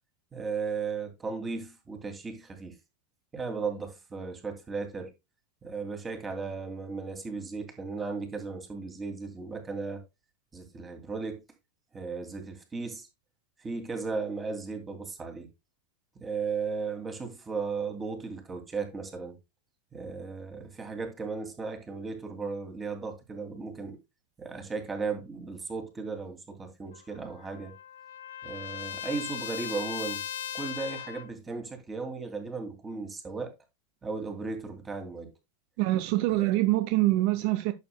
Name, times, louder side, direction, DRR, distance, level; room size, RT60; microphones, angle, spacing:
voice 1, 0.3-2.8 3.3-5.1 5.6-10.0 10.5-11.4 11.9-13.1 13.6-15.5 16.2-19.4 19.9-24.0 24.4-27.7 28.4-30.2 30.5-33.5 34.0-35.3 36.4-36.5, right 4 dB, 20° right, 2.6 m, -36 dB
Trumpet, 26.9-31.3, left 10 dB, 70° left, 0.7 m, -38 dB
voice 2, 35.8-37.7, right 17 dB, 50° right, 0.6 m, -25 dB
11.0 x 7.2 x 2.2 m
figure-of-eight pair, 85°, 0 cm